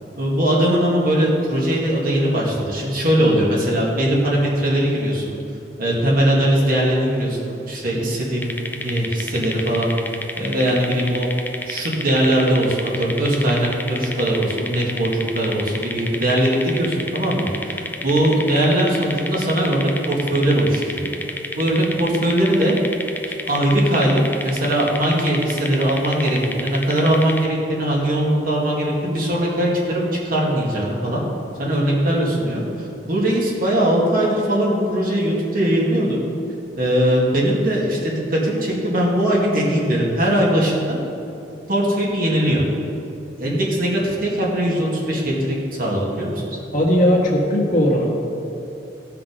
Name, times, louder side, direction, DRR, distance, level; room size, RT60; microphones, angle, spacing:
voice 1, 0.2-5.3 5.8-9.9 10.4-11.3 11.7-21.1 21.6-22.8 23.5-31.2 31.6-36.2 36.8-41.0 41.7-42.6 43.4-46.5, right 1 dB, 55° right, -4 dB, 2.3 m, -20 dB
sound 1, 8.4-27.5, left 2 dB, 10° left, 0.6 m, -31 dB
voice 2, 46.7-48.3, equal, 50° left, -2 dB, 1.8 m, -18 dB
16.5 x 5.9 x 5.3 m, 2.9 s
head